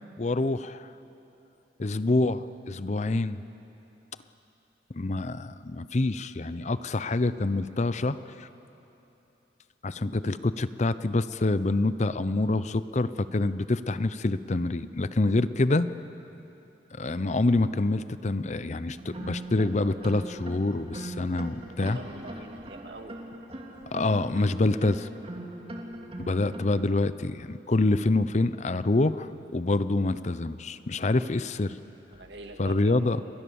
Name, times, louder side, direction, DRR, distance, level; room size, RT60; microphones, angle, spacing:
voice 1, 0.2-0.9 1.8-3.4 4.9-8.5 9.8-15.9 17.0-22.0 23.9-25.1 26.3-31.8 32.6-33.2, left 2 dB, 40° left, 14 dB, 0.6 m, -26 dB
sound 1, 18.9-26.8, right 1 dB, 35° right, 2.4 m, -40 dB
voice 2, 21.8-23.1 32.1-33.1, right 2 dB, 75° right, 4 dB, 2.3 m, -44 dB
28.5 x 21.5 x 7.1 m, 3.0 s
head